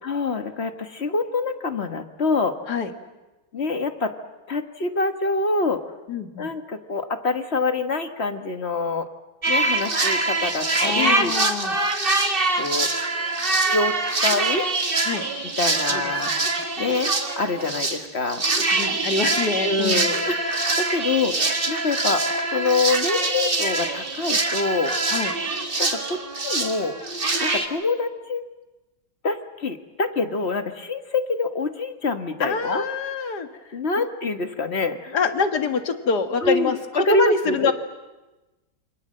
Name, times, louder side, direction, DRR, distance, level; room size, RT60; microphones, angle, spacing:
voice 1, 0.0-2.6 3.5-4.1 4.5-5.8 6.4-9.1 9.5-11.3 12.6-12.9 13.5-14.0 14.2-14.7 15.6-18.4 19.6-24.9 25.8-27.0 27.4-28.4 29.2-32.8 33.7-35.2 36.4-37.7, left 3 dB, 35° left, 8 dB, 1.4 m, -26 dB
voice 2, 6.1-6.5 10.8-11.8 15.0-15.3 15.6-16.4 18.7-20.2 25.1-25.3 32.4-34.1 35.1-37.7, left 4 dB, 55° left, 7 dB, 2.2 m, -26 dB
sound 1, 9.4-18.0 18.3-27.7, right 3 dB, 30° right, 1.9 m, -24 dB
28.5 x 25.0 x 7.6 m, 1.1 s
omnidirectional pair, 2.2 m